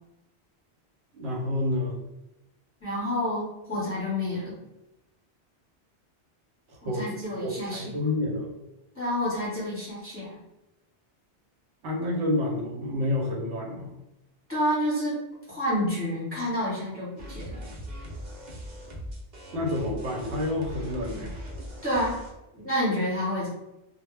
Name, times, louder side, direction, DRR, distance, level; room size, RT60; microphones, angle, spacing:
voice 1, 1.1-1.9 6.7-7.1 7.4-8.5 11.8-13.9 19.5-21.4, left 1 dB, 75° right, -2 dB, 0.9 m, -29 dB
voice 2, 2.8-4.5 6.8-8.0 8.9-10.4 14.5-15.2 15.5-17.6 21.8-22.2 22.5-23.5, equal, 15° left, -8 dB, 0.9 m, -29 dB
sound 1, 17.2-22.3, equal, 50° right, 0.6 m, -39 dB
2.1 x 2.1 x 3.2 m, 0.93 s
omnidirectional pair, 1.1 m